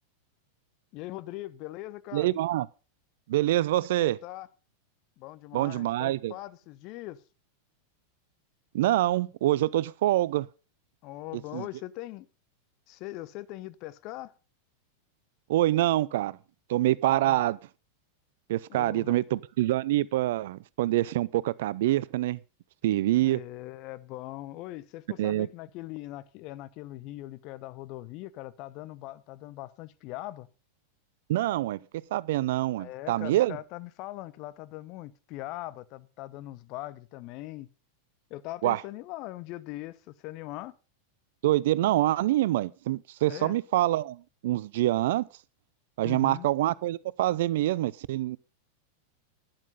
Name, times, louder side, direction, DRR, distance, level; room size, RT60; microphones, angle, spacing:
voice 1, 0.9-2.3 4.0-4.5 5.2-7.2 11.0-12.3 12.9-14.3 17.1-17.4 18.7-19.1 23.2-30.5 32.8-37.7 38.3-40.7 43.2-43.6 46.0-46.5, left 16 dB, 40° left, 0.9 m, -41 dB
voice 2, 2.1-2.7 3.3-4.2 5.5-6.3 8.7-10.5 11.5-11.6 15.5-16.4 16.7-17.6 18.5-22.4 22.8-23.4 25.2-25.5 31.3-31.8 32.1-33.6 38.6-38.8 41.4-45.3 46.0-48.4, right 15 dB, 55° right, 0.5 m, -26 dB
12.0 x 10.5 x 5.3 m
figure-of-eight pair, 90°, 0 cm